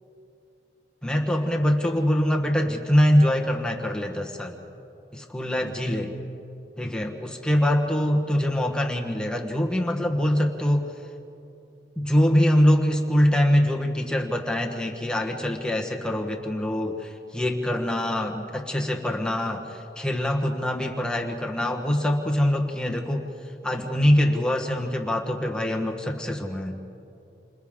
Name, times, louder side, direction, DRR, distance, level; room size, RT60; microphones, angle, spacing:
voice 1, 1.0-4.6 5.1-6.1 6.8-10.9 12.0-23.3 23.6-26.8, equal, 5° left, 1 dB, 1.2 m, -24 dB
29.5 x 26.5 x 3.7 m, 2.7 s
head